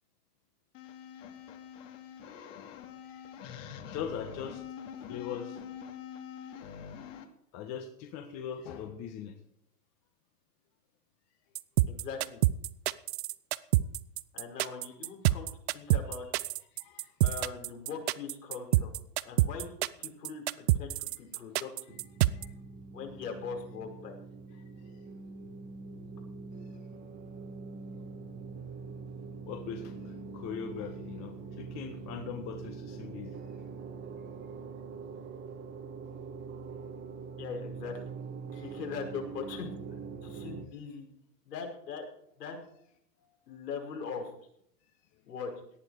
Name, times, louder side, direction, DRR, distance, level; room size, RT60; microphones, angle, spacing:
sound 1, 0.7-7.2, left 8 dB, 50° left, 2.5 m, -45 dB
voice 1, 3.1-4.6 5.1-5.6 6.6-6.7 7.5-9.3 16.8-17.1 22.3-22.5 29.5-33.4 38.5-38.7, left 7 dB, 35° left, 5 dB, 1.6 m, -41 dB
sound 2, 11.6-22.4, right 16 dB, 40° right, 0.7 m, -27 dB
voice 2, 11.9-12.4 14.3-16.3 17.2-18.9 19.2-19.7 20.0-21.7 22.9-24.2 37.4-38.0 38.5-39.7 40.2-41.1 41.5-42.0 42.4-42.6 43.5-44.3 45.3-45.5, left 5 dB, 75° left, 1 dB, 5.6 m, -40 dB
sound 3, 21.9-40.6, right 4 dB, 20° right, 1.5 m, -44 dB
18.5 x 11.5 x 4.9 m, 0.69 s
hypercardioid pair, 120°, 49 cm